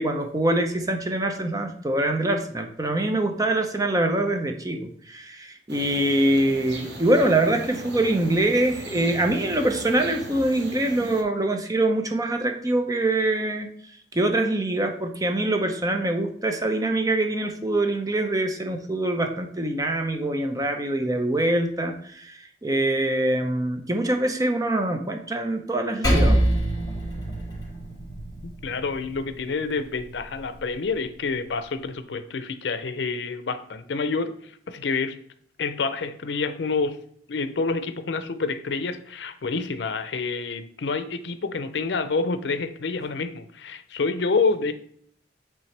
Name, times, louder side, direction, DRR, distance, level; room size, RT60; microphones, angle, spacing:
voice 1, 0.0-13.7 14.1-26.4, right 1 dB, 20° right, 5 dB, 0.7 m, -24 dB
sound 1, 5.7-11.2, right 1 dB, 80° right, 1.1 m, -38 dB
Percussion, 26.0-30.8, right 1 dB, 25° left, 2.4 m, -26 dB
voice 2, 28.4-34.3 34.7-35.1 35.6-37.0 37.3-44.7, left 4 dB, 85° left, 11 dB, 0.5 m, -28 dB
8.6 x 3.4 x 3.3 m, 0.63 s
head